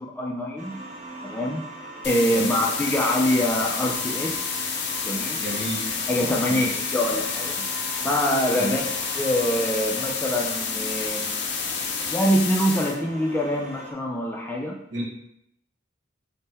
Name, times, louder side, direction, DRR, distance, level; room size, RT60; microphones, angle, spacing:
voice 1, 0.2-0.8 1.2-1.6 2.0-4.4 5.0-5.4 6.1-7.7 8.0-8.9 9.2-11.3 12.1-14.8, equal, 10° left, 0 dB, 0.3 m, -25 dB
sound 1, 0.6-13.9, right 2 dB, 40° right, 0.5 m, -40 dB
sound 2, 2.0-13.0, left 5 dB, 60° left, 0.5 m, -29 dB
voice 2, 2.3-2.7 5.4-5.9 6.4-6.7 8.5-8.7 14.9-15.0, equal, 70° right, -4 dB, 1.2 m, -31 dB
3.5 x 2.1 x 4.1 m, 0.77 s
head